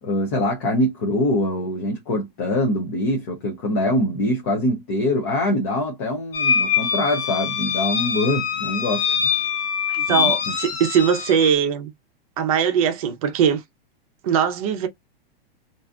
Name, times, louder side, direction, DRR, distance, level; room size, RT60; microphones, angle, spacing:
voice 1, 0.0-9.2 10.1-10.5, left 1 dB, 15° left, 0.4 m, -23 dB
sound 1, 6.3-11.5, left 7 dB, 60° left, 1.5 m, -24 dB
voice 2, 9.9-11.9 12.4-13.6 14.2-14.9, right 8 dB, 35° right, 0.6 m, -21 dB
2.5 x 2.4 x 3.4 m
supercardioid pair, 170°, 31 cm